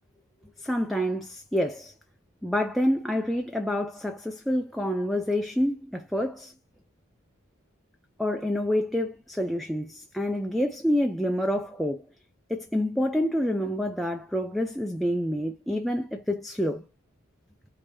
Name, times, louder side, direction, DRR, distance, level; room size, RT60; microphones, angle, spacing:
voice 1, 0.6-1.9 2.4-6.5 8.2-12.0 12.5-16.8, equal, ahead, 0.4 m, -27 dB
5.2 x 2.8 x 3.1 m
head